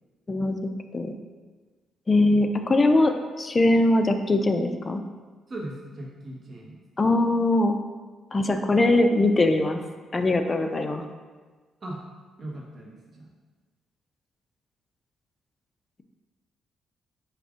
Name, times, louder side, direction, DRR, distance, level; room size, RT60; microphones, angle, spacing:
voice 1, 2.1-5.0 7.0-7.8 8.3-9.8 10.1-11.0, left 2 dB, 25° left, 6 dB, 0.4 m, -21 dB
voice 2, 5.5-6.8 11.8-12.0 12.4-13.3, right 1 dB, 35° right, -3 dB, 1.0 m, -38 dB
4.9 x 2.5 x 3.6 m, 1.4 s
cardioid pair, 90°, 0 cm